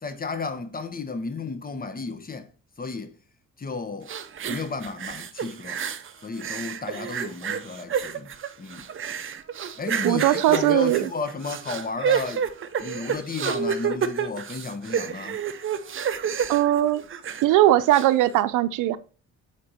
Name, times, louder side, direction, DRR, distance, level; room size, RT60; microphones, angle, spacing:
voice 1, 0.0-2.5 2.8-3.1 3.6-4.1 4.5-5.8 6.2-8.9 9.8-12.4 12.8-15.4, left 4 dB, 30° left, 1.2 m, -33 dB
sound 1, 4.1-6.1 6.4-17.5 17.9-18.1, right 7 dB, 45° right, 0.7 m, -29 dB
voice 2, 10.0-11.1 16.5-17.0 17.4-19.0, right 14 dB, 90° right, 0.6 m, -20 dB
8.1 x 4.4 x 4.1 m
cardioid pair, 90°, 30 cm